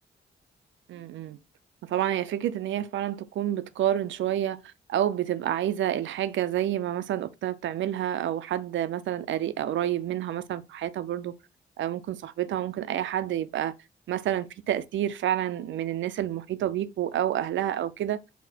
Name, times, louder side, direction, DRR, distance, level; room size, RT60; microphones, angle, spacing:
voice 1, 0.9-1.4 1.9-4.6 4.9-11.3 11.8-13.7 14.1-18.2, right 11 dB, 75° right, 0.4 m, -29 dB
4.1 x 2.1 x 4.0 m
cardioid pair, 60°, 20 cm